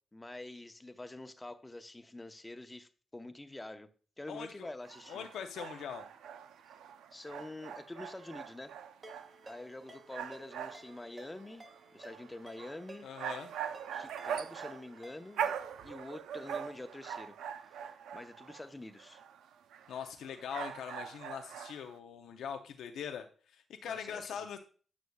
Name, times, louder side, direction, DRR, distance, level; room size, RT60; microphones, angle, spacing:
voice 1, 0.1-3.9 4.2-5.3 7.1-8.7 9.4-11.7 11.9-13.1 13.9-15.5 15.8-19.2 23.9-24.6, left 2 dB, 20° left, 0.8 m, -47 dB
voice 2, 4.3-4.7 5.1-6.0 13.0-13.5 19.9-24.6, left 7 dB, 80° left, 0.6 m, -42 dB
sound 1, 4.8-18.7 19.0-21.9, right 8 dB, 85° right, 0.5 m, -42 dB
Ringtone, 9.0-15.9, right 2 dB, 40° right, 2.1 m, -55 dB
9.4 x 6.2 x 2.3 m
supercardioid pair, 55°, 0 cm